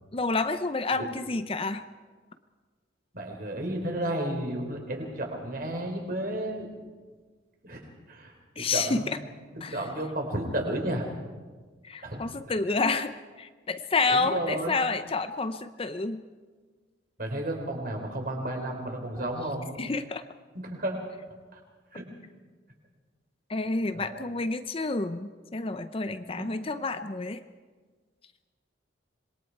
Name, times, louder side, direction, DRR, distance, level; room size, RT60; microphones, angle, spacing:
voice 1, 0.1-1.8 8.6-9.0 9.6-9.8 11.8-16.2 19.8-20.2 23.5-27.4, left 3 dB, 30° left, 10 dB, 0.6 m, -29 dB
voice 2, 3.1-6.7 7.6-7.8 8.1-11.1 12.0-12.2 14.1-14.7 17.2-19.7 20.5-21.0 21.5-21.6 21.9-22.0 23.9-24.3 26.4-26.5, right 1 dB, 50° right, 1 dB, 4.0 m, -32 dB
26.0 x 21.5 x 4.7 m, 1.4 s
head